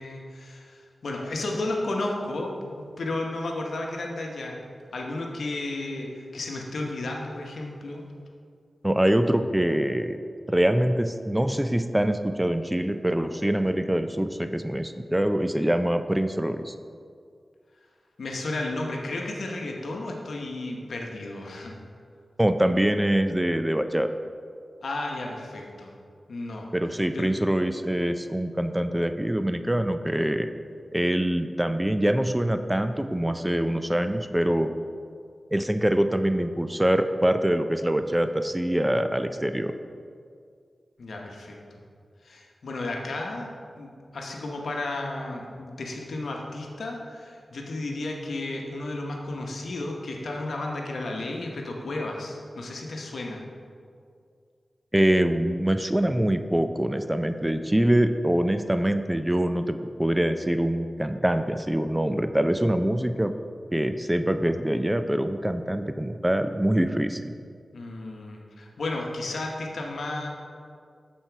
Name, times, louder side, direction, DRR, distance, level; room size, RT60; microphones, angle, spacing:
voice 1, 0.0-4.6 4.9-8.1 18.2-21.8 24.8-25.9 26.3-26.7 27.1-27.3 41.0-41.8 42.2-43.5 43.8-53.4 67.7-70.3, left 2 dB, 80° left, 1 dB, 0.9 m, -33 dB
voice 2, 8.8-10.2 10.5-16.7 22.4-24.1 26.7-30.5 30.9-34.7 35.5-39.7 54.9-63.3 63.7-67.3, right 1 dB, 15° right, 9 dB, 0.4 m, -24 dB
7.6 x 4.3 x 4.5 m, 2.2 s
cardioid pair, 45°, 0 cm